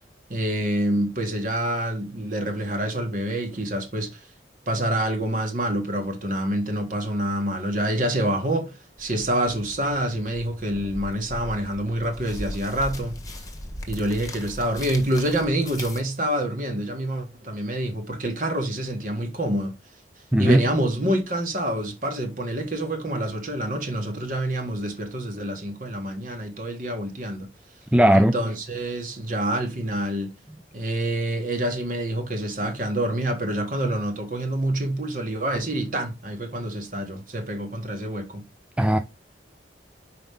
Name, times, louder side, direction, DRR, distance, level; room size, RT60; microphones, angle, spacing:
voice 1, 0.3-4.2 4.7-13.4 13.9-19.7 20.4-27.5 28.1-30.3 30.7-38.5, right 1 dB, 50° right, 1.8 m, -27 dB
sound 1, 9.0-16.0, left 1 dB, 20° left, 1.3 m, -38 dB
voice 2, 20.3-20.7 27.9-28.3 38.8-39.0, right 1 dB, 5° right, 0.4 m, -17 dB
5.5 x 5.0 x 3.6 m
head